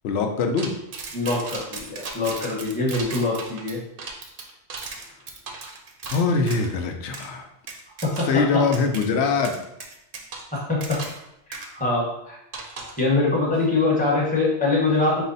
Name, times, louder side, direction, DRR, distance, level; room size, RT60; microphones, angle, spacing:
voice 1, 0.0-0.7 6.1-7.5 8.3-9.5, left 4 dB, 65° left, 4 dB, 0.8 m, -22 dB
sound 1, 0.6-6.7 7.1-7.3 7.7-8.4 8.7-9.0 9.4-11.2 11.5-11.7 12.5-13.0, right 4 dB, 55° right, 0.7 m, -36 dB
voice 2, 1.1-3.8 8.0-8.7 10.5-11.0 11.5-12.4 13.0-15.2, left 3 dB, 5° left, -4 dB, 0.9 m, -23 dB
4.7 x 2.1 x 3.9 m, 0.83 s
omnidirectional pair, 1.2 m